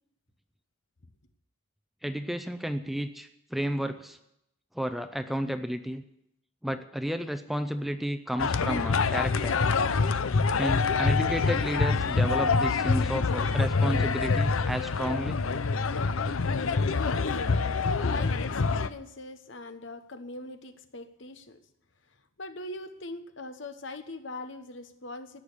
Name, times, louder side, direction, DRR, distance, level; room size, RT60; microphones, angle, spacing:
voice 1, 2.0-4.2 4.7-6.0 6.6-9.6 10.6-15.4, equal, ahead, 8 dB, 0.6 m, -32 dB
sound 1, 8.4-18.9, left 4 dB, 80° left, 0.6 m, -26 dB
voice 2, 16.9-21.6 22.4-25.4, left 2 dB, 60° left, 9 dB, 1.1 m, -41 dB
17.0 x 6.6 x 9.8 m, 0.83 s
head